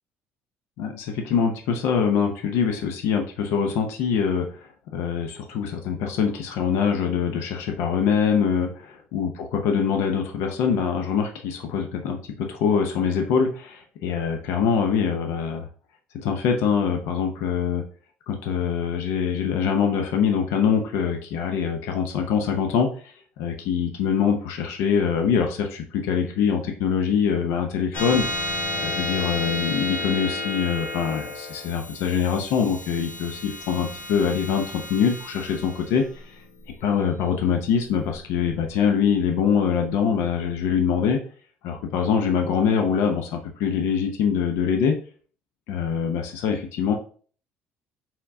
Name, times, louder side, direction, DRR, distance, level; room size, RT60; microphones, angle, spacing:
voice 1, 0.8-15.7 16.2-17.8 18.3-28.2 28.7-36.4 36.8-41.2 41.6-45.0 45.7-46.9, left 7 dB, 90° left, 4 dB, 0.6 m, -24 dB
sound 1, 27.9-38.8, left 1 dB, 55° left, 1.3 m, -32 dB
4.5 x 3.6 x 2.7 m, 0.44 s
cardioid pair, 150°, 4 cm